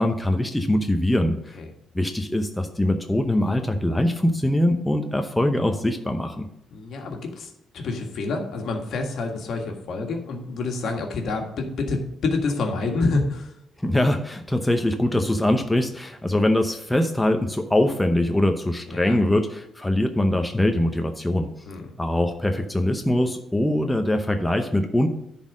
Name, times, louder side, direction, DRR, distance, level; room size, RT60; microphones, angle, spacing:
voice 1, 0.0-1.6 1.9-6.5 13.8-21.5 22.0-25.1, left 1 dB, 10° left, 5 dB, 0.8 m, -22 dB
voice 2, 6.7-13.5 18.9-19.2 21.7-21.8, left 3 dB, 65° left, 3 dB, 1.7 m, -28 dB
10.5 x 4.3 x 6.1 m, 0.81 s
cardioid pair, 90°, 0 cm